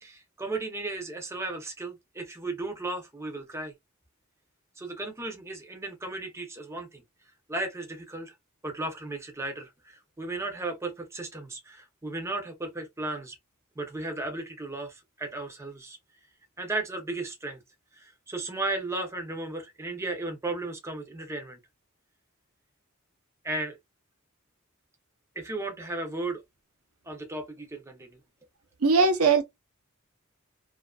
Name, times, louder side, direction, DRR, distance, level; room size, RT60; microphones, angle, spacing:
voice 1, 0.0-3.7 4.8-7.0 7.5-8.3 8.6-13.4 13.8-16.0 16.6-17.6 17.9-21.6 23.4-23.8 25.4-26.4 27.0-28.2, right 2 dB, 15° right, 0.6 m, -35 dB
voice 2, 28.8-29.4, right 4 dB, 80° right, 0.7 m, -20 dB
2.7 x 2.4 x 2.2 m
head